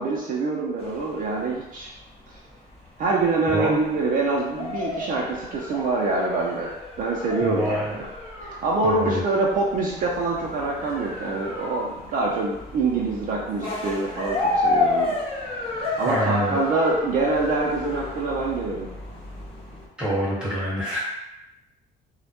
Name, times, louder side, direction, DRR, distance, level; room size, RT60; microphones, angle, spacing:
voice 1, 0.0-1.9 2.3-2.4 3.0-8.1 8.4-15.2 16.0-19.0, right 3 dB, 55° right, -3 dB, 0.4 m, -25 dB
sound 1, 0.8-19.9, left 2 dB, 35° left, 0.8 m, -31 dB
voice 2, 7.4-7.9 8.8-9.2 16.0-16.6 20.0-21.0, equal, 5° right, -7 dB, 1.0 m, -26 dB
2.1 x 2.0 x 2.8 m, 0.93 s
cardioid pair, 110°, 17 cm